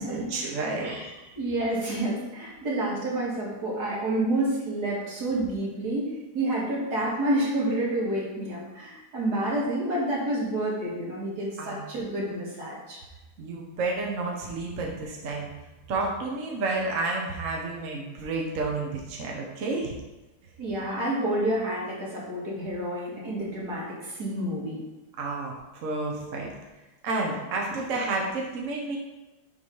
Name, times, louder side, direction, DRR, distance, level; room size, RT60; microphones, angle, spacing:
voice 1, 0.0-1.3 11.6-11.9 13.4-15.5 15.9-20.0 25.2-26.5 27.0-29.0, right 3 dB, 60° right, -1 dB, 1.3 m, -30 dB
voice 2, 0.8-1.1 1.4-13.0 20.6-24.8, right 1 dB, 90° right, -5 dB, 2.4 m, -29 dB
7.7 x 3.2 x 5.4 m, 1.1 s
omnidirectional pair, 1.7 m